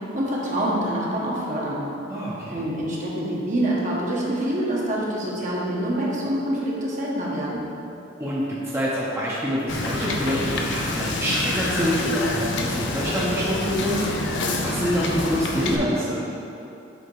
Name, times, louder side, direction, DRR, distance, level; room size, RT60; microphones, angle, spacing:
voice 1, 0.0-1.9 2.5-7.7, right 1 dB, 45° right, -5 dB, 1.2 m, -26 dB
voice 2, 2.1-2.6 8.2-14.0 14.6-16.2, equal, 15° right, -8 dB, 0.9 m, -26 dB
Wind / Boat Water vehicle, 9.7-15.8, left 2 dB, 70° left, 0.7 m, -27 dB
8.0 x 3.6 x 4.8 m, 2.8 s
head